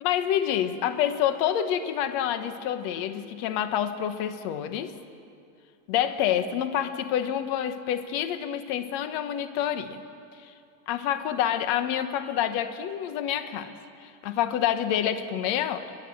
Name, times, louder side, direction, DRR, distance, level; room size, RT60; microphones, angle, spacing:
voice 1, 0.0-4.9 5.9-10.0 10.4-10.5 10.9-13.7 14.0-16.0, left 10 dB, 70° left, 9 dB, 2.2 m, -27 dB
29.5 x 21.0 x 7.7 m, 2.4 s
omnidirectional pair, 3.5 m